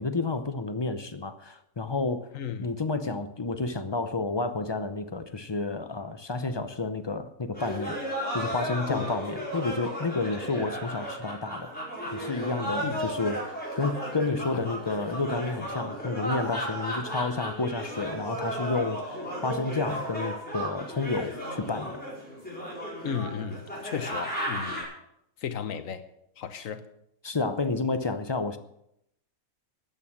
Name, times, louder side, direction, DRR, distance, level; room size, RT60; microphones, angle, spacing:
voice 1, 0.0-2.3 2.6-8.0 8.3-11.7 12.1-22.0 27.2-28.6, left 3 dB, 40° left, 0.3 m, -30 dB
voice 2, 2.3-2.7 8.9-9.2 10.5-10.7 12.8-13.1 14.5-14.7 23.0-25.0 25.4-26.1 26.4-26.8, left 7 dB, 65° left, 1.3 m, -35 dB
sound 1, 7.5-24.8, equal, 5° left, 4.9 m, -34 dB
12.5 x 9.0 x 7.3 m
omnidirectional pair, 1.5 m